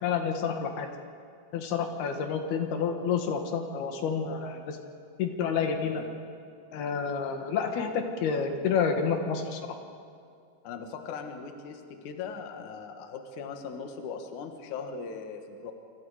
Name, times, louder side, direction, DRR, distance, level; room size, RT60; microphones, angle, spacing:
voice 1, 0.0-0.9 1.5-4.8 5.2-6.0 6.7-9.6, left 6 dB, 85° left, 4 dB, 3.6 m, -29 dB
voice 2, 10.6-15.7, left 5 dB, 60° left, 5 dB, 2.7 m, -39 dB
26.5 x 26.5 x 5.0 m, 2.3 s
omnidirectional pair, 4.4 m